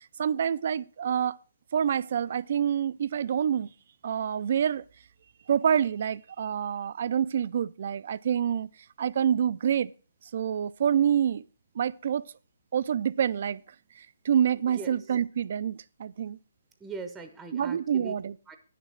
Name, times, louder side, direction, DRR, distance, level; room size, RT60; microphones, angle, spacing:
voice 1, 0.2-1.4 1.7-3.7 4.0-4.8 5.5-8.7 9.0-9.9 10.3-11.4 11.8-12.2 12.7-13.6 14.0-16.4 17.5-18.3, right 8 dB, 50° right, 0.4 m, -27 dB
voice 2, 14.7-15.2 16.8-18.1 18.5-18.6, right 4 dB, 5° right, 0.7 m, -41 dB
9.6 x 6.6 x 6.2 m
hypercardioid pair, 160°, 0 cm